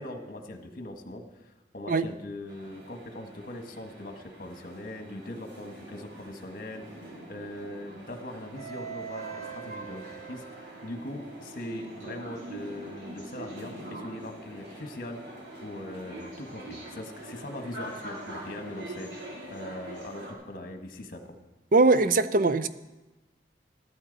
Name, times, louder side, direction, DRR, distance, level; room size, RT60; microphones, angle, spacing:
voice 1, 0.0-6.9 7.3-15.2 15.6-19.1 19.5-21.4, left 1 dB, 50° left, 5 dB, 1.5 m, -41 dB
sound 1, 2.5-20.3, right 2 dB, 70° right, 3.3 m, -43 dB
voice 2, 21.7-22.7, right 3 dB, 50° right, 13 dB, 0.6 m, -21 dB
14.0 x 13.0 x 4.0 m, 1.1 s
head